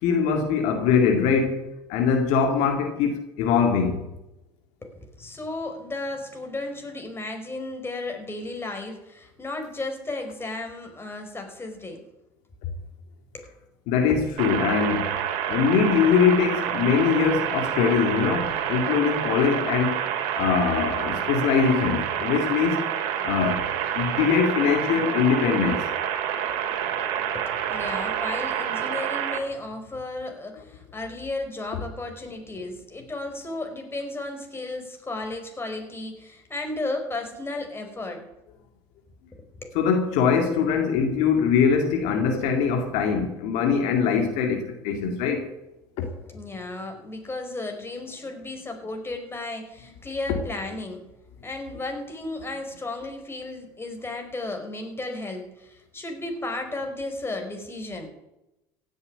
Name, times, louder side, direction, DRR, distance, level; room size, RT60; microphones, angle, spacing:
voice 1, 0.0-4.1 13.9-15.1 15.5-20.0 20.3-22.8 23.2-23.7 23.9-25.9 39.7-45.5, left 6 dB, 75° left, 2.2 m, -22 dB
voice 2, 4.8-12.0 13.3-13.5 27.3-38.3 39.6-39.8 46.0-51.1 51.4-58.1, left 2 dB, 20° left, 4.9 m, -34 dB
sound 1, 14.4-29.4, right 9 dB, 75° right, 2.5 m, -28 dB
16.0 x 8.0 x 9.9 m
supercardioid pair, 80°, 12 cm